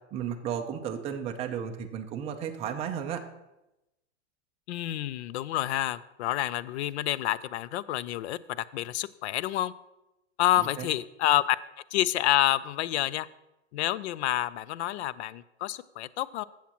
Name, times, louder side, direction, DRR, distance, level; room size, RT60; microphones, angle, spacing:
voice 1, 0.1-3.2 10.8-10.9, right 8 dB, 15° right, 4 dB, 0.5 m, -33 dB
voice 2, 4.7-9.7 10.4-11.6 11.9-13.3 13.7-16.4, left 14 dB, 65° left, 18 dB, 0.5 m, -28 dB
14.5 x 7.3 x 3.0 m, 0.94 s
supercardioid pair, 150°, 36 cm